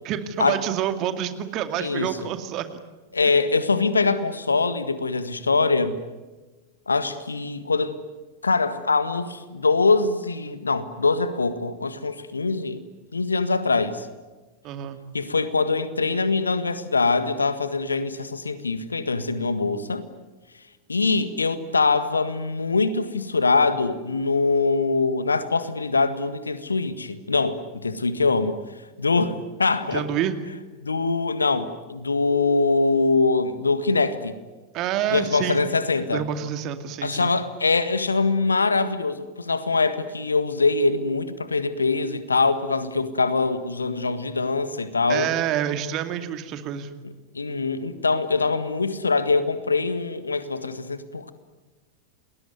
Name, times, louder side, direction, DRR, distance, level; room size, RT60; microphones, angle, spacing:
voice 1, 0.0-2.8 14.6-15.0 29.9-30.4 34.7-35.6 36.1-37.3 45.1-47.0, right 10 dB, 35° right, 2.4 m, -28 dB
voice 2, 1.8-2.3 3.1-6.0 6.9-7.9 8.4-12.8 13.1-14.1 15.1-20.0 20.9-28.6 29.0-30.1 30.8-34.3 35.1-36.2 37.0-45.3 47.3-51.3, left 3 dB, 75° left, 1.7 m, -23 dB
29.0 x 20.5 x 9.5 m
figure-of-eight pair, 90°, 0 cm